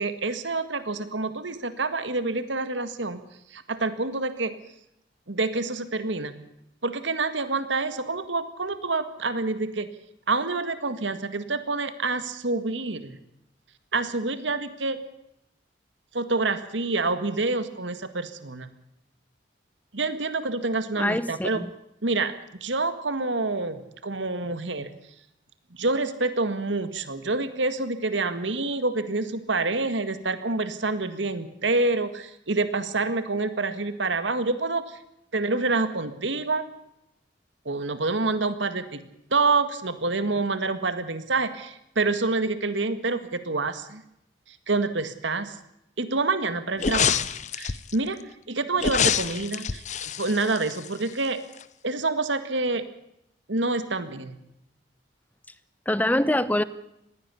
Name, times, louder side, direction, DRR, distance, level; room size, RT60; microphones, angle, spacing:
voice 1, 0.0-3.2 3.5-4.5 5.3-6.4 6.8-9.9 10.3-13.2 13.9-15.0 16.1-18.7 19.9-21.6 22.0-22.3 22.6-24.9 25.7-35.0 35.3-36.7 37.6-39.0 39.3-44.0 44.5-45.6 46.0-47.3 47.5-48.2 48.5-51.4 51.8-52.8 53.5-54.4, right 3 dB, 85° right, 11 dB, 1.9 m, -27 dB
voice 2, 21.0-21.7 55.9-56.6, left 1 dB, 10° left, 16 dB, 0.8 m, -24 dB
sound 1, 46.8-47.9 48.8-51.3 51.6-51.7, left 7 dB, 40° left, 0.7 m, -26 dB
20.5 x 16.0 x 8.4 m, 0.81 s
head